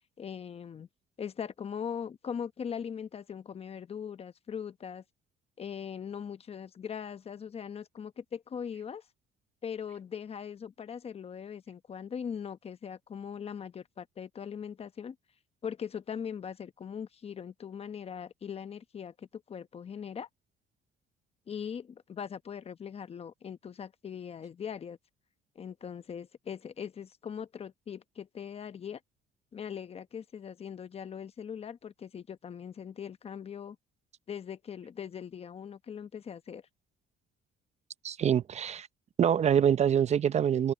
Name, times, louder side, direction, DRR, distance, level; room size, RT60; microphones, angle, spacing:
voice 1, 0.2-0.9 1.2-5.0 5.6-9.0 9.6-15.2 15.6-20.3 21.5-25.0 25.5-29.0 29.5-33.8 34.3-36.6, left 7 dB, 35° left, 0.9 m, -40 dB
voice 2, 38.0-38.9 39.2-40.7, right 9 dB, 40° right, 0.6 m, -25 dB
cardioid pair, 110°, 17 cm